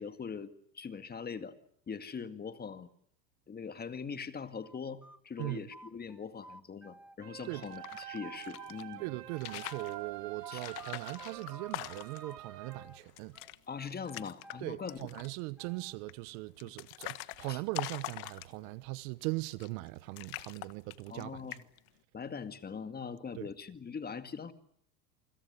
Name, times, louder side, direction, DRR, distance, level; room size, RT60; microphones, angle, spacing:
voice 1, 0.0-1.6 1.9-2.9 3.5-9.0 10.5-10.6 13.7-15.1 16.6-16.7 17.5-17.6 21.1-21.6 22.1-24.5, left 6 dB, 20° left, 2.1 m, -42 dB
sound 1, 4.6-7.2 7.5-10.0 10.4-13.0 13.3-16.0, right 1 dB, 5° right, 1.5 m, -53 dB
sound 2, 7.2-12.9, right 15 dB, 75° right, 4.1 m, -46 dB
sound 3, 7.5-8.8 9.3-9.9 10.5-12.3 12.7-12.8 13.1-13.6 13.9-14.6 14.9-15.4 16.1-18.8 19.5-19.9 20.2-21.2 21.5-21.9, left 20 dB, 50° left, 1.6 m, -43 dB
voice 2, 9.0-13.4 14.6-21.6 23.4-23.5, right 22 dB, 55° right, 1.2 m, -40 dB
28.5 x 25.5 x 6.9 m
hypercardioid pair, 110°, 49 cm